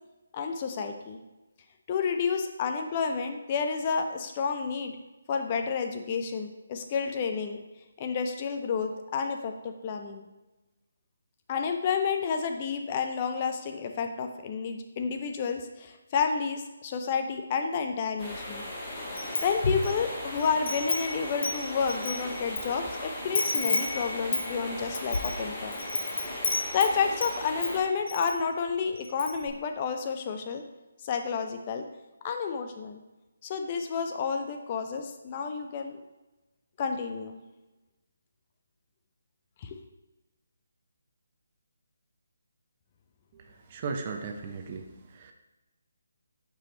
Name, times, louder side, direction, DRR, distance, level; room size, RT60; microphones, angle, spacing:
voice 1, 0.3-1.2 1.9-5.0 5.3-7.6 8.0-10.3 11.5-18.6 19.4-25.8 26.7-30.6 31.0-31.8 32.2-33.0 33.4-36.0 36.8-37.4 39.6-39.8, left 5 dB, 30° left, 5 dB, 0.4 m, -30 dB
sound 1, 18.2-27.8, left 1 dB, 15° left, 1.0 m, -38 dB
Wind chime, 19.2-20.0 20.4-22.6 22.9-23.0 23.3-27.3 27.6-28.3 28.7-28.8 29.0-29.5, left 3 dB, 55° left, 0.8 m, -31 dB
voice 2, 43.7-45.3, right 4 dB, 35° right, 4 dB, 0.5 m, -36 dB
4.7 x 2.9 x 3.8 m, 1.1 s
figure-of-eight pair, 150°, 0 cm